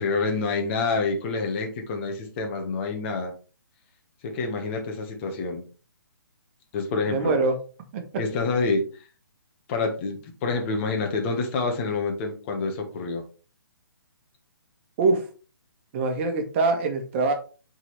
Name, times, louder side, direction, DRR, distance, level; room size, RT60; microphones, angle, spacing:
voice 1, 0.0-3.3 4.2-5.6 6.7-7.3 8.2-8.8 9.7-13.2, left 3 dB, 35° left, 3 dB, 1.5 m, -27 dB
voice 2, 7.1-7.5 7.9-8.0 15.0-15.2 15.9-17.3, right 3 dB, 35° right, 5 dB, 1.4 m, -23 dB
7.1 x 4.0 x 3.4 m, 0.36 s
figure-of-eight pair, 140°, 12 cm